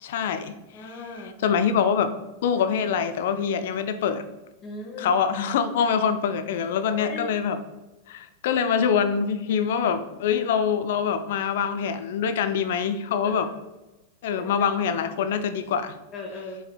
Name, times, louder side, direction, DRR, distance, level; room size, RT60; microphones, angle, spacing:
voice 1, 0.0-0.5 1.4-2.1 2.4-4.2 5.0-7.6 8.1-13.5 14.2-15.9, left 7 dB, 55° left, 10 dB, 0.4 m, -24 dB
voice 2, 0.7-1.3 4.6-5.1 6.9-7.4 13.2-13.5 16.1-16.6, left 2 dB, 30° left, 0 dB, 1.0 m, -37 dB
4.9 x 4.6 x 2.3 m, 1.1 s
figure-of-eight pair, 90°, 0 cm